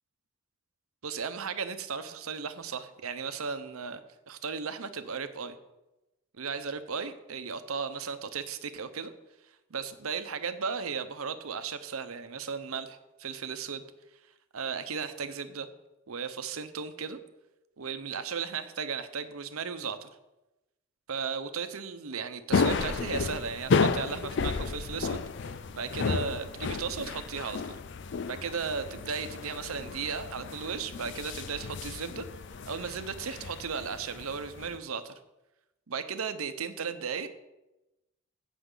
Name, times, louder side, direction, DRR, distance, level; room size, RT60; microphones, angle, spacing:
voice 1, 1.0-4.0 4.3-5.6 6.3-9.1 9.7-13.8 14.5-15.7 16.1-17.2 17.8-20.1 21.1-25.2 25.5-27.8 28.3-32.3 32.7-35.1 35.9-37.3, right 6 dB, 90° right, 10 dB, 0.8 m, -35 dB
sound 1, 22.5-34.8, left 4 dB, 55° left, 0.5 m, -32 dB
16.0 x 6.2 x 3.9 m, 0.98 s
head